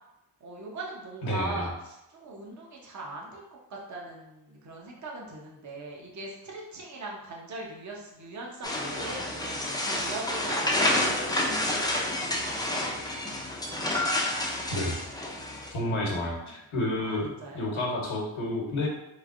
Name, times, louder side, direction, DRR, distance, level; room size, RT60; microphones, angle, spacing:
voice 1, 0.4-12.8 15.9-16.0 17.0-17.8, right 2 dB, 40° right, -2 dB, 0.7 m, -40 dB
voice 2, 1.2-1.7 14.2-14.3 14.7-14.9 15.7-18.9, left 1 dB, 85° left, -1 dB, 1.0 m, -30 dB
sound 1, 8.6-15.7, left 1 dB, 10° left, 0.4 m, -29 dB
3.2 x 3.2 x 2.5 m, 0.89 s
wide cardioid pair, 90°, 47 cm